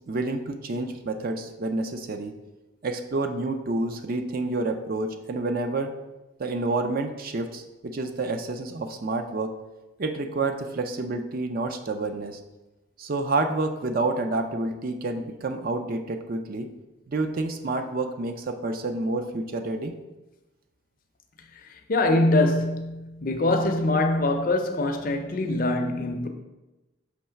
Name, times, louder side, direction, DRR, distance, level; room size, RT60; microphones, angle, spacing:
voice 1, 0.1-2.3 2.8-5.9 6.4-9.5 10.0-12.4 13.0-16.7 17.1-19.9, right 2 dB, 45° right, 0.4 m, -29 dB
voice 2, 21.6-26.3, left 2 dB, 40° left, 0.5 m, -24 dB
5.9 x 3.1 x 5.6 m
head